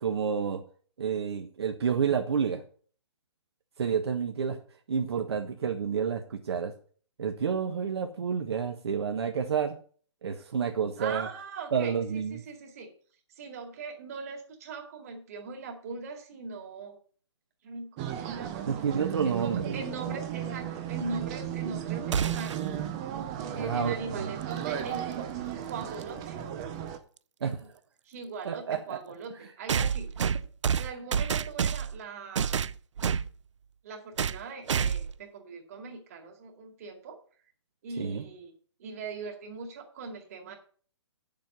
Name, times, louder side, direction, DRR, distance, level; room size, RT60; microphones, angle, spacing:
voice 1, 0.0-0.6 1.0-2.6 3.8-4.6 4.9-6.7 7.2-9.8 10.2-11.3 11.7-12.4 18.7-19.8 23.5-24.3 27.4-27.6 28.4-29.0 38.0-38.2, right 7 dB, 60° right, 4 dB, 1.4 m, -29 dB
voice 2, 11.0-12.9 13.4-17.0 17.6-18.7 19.2-22.6 23.5-26.4 27.4-27.6 28.0-30.1 30.8-32.6 33.8-37.2 37.8-38.5 38.8-40.5, right 4 dB, 30° right, 3 dB, 2.2 m, -40 dB
sound 1, 18.0-27.0, right 10 dB, 10° right, 0.4 m, -35 dB
sound 2, 22.1-22.7 24.8-24.9 26.0-26.1 29.7-32.0 32.4-33.3 34.2-34.4 34.7-35.2, right 7 dB, 80° right, 0.6 m, -28 dB
9.2 x 7.5 x 5.4 m, 0.43 s
hypercardioid pair, 175°, 15 cm